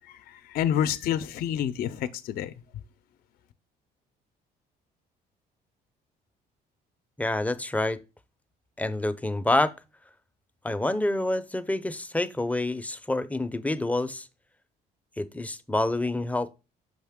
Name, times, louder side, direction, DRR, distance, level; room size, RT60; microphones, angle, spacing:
voice 1, 0.1-2.5, left 10 dB, 60° left, 0.5 m, -28 dB
voice 2, 7.2-8.0 8.8-9.7 10.6-14.3 15.2-16.5, left 2 dB, 10° left, 0.5 m, -27 dB
6.5 x 5.2 x 3.5 m
cardioid pair, 110°, 17 cm